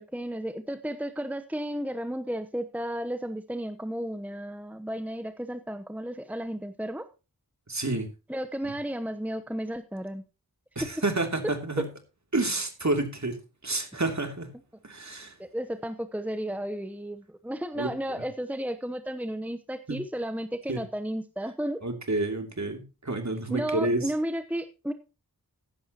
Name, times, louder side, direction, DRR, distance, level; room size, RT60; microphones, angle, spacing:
voice 1, 0.0-7.1 8.3-10.2 15.4-21.8 23.5-24.9, right 1 dB, 5° right, 9 dB, 0.9 m, -33 dB
voice 2, 7.7-8.1 10.7-11.9 12.3-13.4 13.6-14.5 14.8-15.4 17.7-17.9 19.9-20.0 20.7-20.8 21.8-24.1, right 2 dB, 50° right, 5 dB, 2.9 m, -29 dB
15.0 x 11.0 x 3.0 m, 0.29 s
wide cardioid pair, 45°, 36 cm